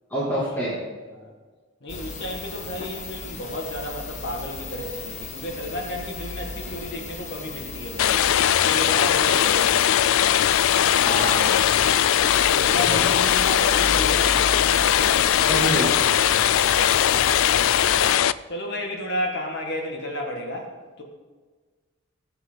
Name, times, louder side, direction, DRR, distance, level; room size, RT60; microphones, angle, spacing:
voice 1, 0.1-0.8 10.9-11.6 12.9-13.0 15.4-16.0, right 1 dB, 10° left, -9 dB, 2.6 m, -27 dB
voice 2, 1.8-8.2 8.5-9.8 12.5-14.7 18.5-20.7 21.0-21.1, left 1 dB, 50° left, 1 dB, 1.8 m, -32 dB
sound 1, 1.9-18.2, left 3 dB, 35° left, 1.0 m, -35 dB
sound 2, 8.0-18.3, left 10 dB, 70° left, 0.3 m, -20 dB
20.0 x 8.0 x 3.9 m, 1.4 s
head